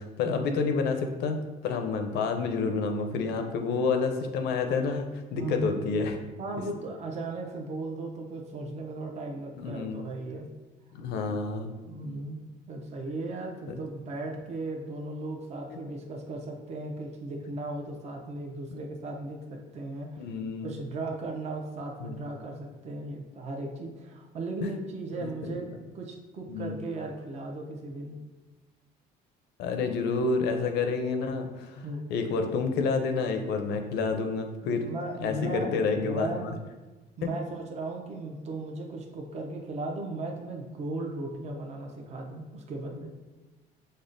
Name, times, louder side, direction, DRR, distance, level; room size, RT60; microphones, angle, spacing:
voice 1, 0.0-6.2 9.6-10.0 11.0-11.7 13.7-13.8 18.7-18.8 20.2-20.7 22.0-22.1 24.6-24.7 25.2-25.5 26.5-26.7 29.6-34.9 35.2-36.5, left 4 dB, 80° left, 5 dB, 0.5 m, -29 dB
voice 2, 5.3-5.9 6.4-10.5 11.9-12.4 12.7-20.2 20.6-25.7 25.9-28.2 31.8-32.1 34.7-36.6 37.2-43.1, right 2 dB, 40° right, 1 dB, 0.5 m, -36 dB
5.2 x 2.1 x 2.5 m, 1.2 s
cardioid pair, 110°, 17 cm